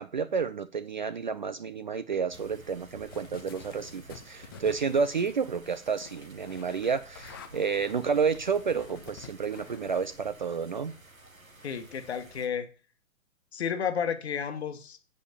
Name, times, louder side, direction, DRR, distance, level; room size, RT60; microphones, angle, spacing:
voice 1, 0.0-10.9, right 5 dB, 40° right, 0.4 m, -30 dB
sound 1, 2.3-12.5, right 2 dB, 90° right, 1.5 m, -52 dB
sound 2, 3.1-10.0, left 8 dB, 20° left, 0.5 m, -50 dB
voice 2, 11.6-12.7 13.5-15.0, left 7 dB, 50° left, 1.3 m, -32 dB
8.0 x 5.2 x 6.7 m
figure-of-eight pair, 120°, 40 cm